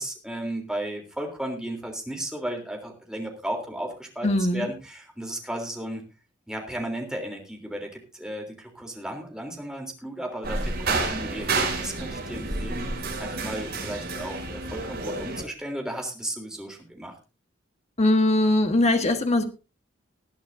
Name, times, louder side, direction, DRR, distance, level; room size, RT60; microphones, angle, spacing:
voice 1, 0.0-6.0 6.5-12.9 13.2-17.1, right 1 dB, 5° right, 3.4 m, -34 dB
voice 2, 4.2-4.7 18.0-19.4, left 1 dB, 35° left, 1.4 m, -21 dB
sound 1, 10.4-15.4, right 3 dB, 60° right, 6.3 m, -30 dB
20.0 x 11.0 x 2.7 m
head